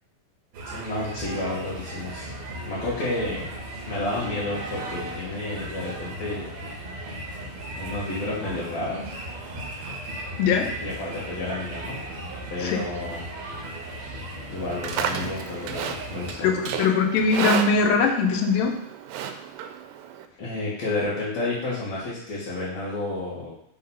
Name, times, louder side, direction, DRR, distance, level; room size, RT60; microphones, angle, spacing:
sound 1, 0.5-16.3, right 1 dB, 60° right, 2.1 m, -36 dB
voice 1, 0.7-2.3 2.6-3.5 3.9-6.5 7.8-9.1 10.8-12.0 12.5-13.2 14.5-16.5 20.4-23.5, left 2 dB, 55° left, -10 dB, 2.4 m, -31 dB
voice 2, 10.4-10.7 12.6-12.8 16.4-18.8, left 5 dB, 90° left, 3 dB, 2.5 m, -21 dB
Livestock farm animals working animals, 14.6-20.3, right 8 dB, 85° right, 2.3 m, -32 dB
5.7 x 3.8 x 5.4 m, 0.72 s
omnidirectional pair, 4.0 m